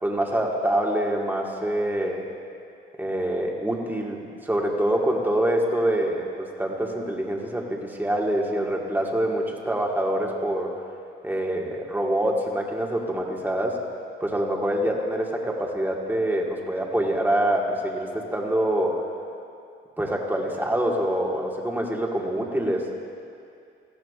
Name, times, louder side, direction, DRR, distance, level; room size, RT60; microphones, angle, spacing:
voice 1, 0.0-2.2 3.0-10.7 11.2-13.8 14.2-19.0 20.0-22.9, right 1 dB, 10° right, -1 dB, 1.6 m, -25 dB
17.5 x 13.5 x 2.4 m, 2.5 s
cardioid pair, 90°, 20 cm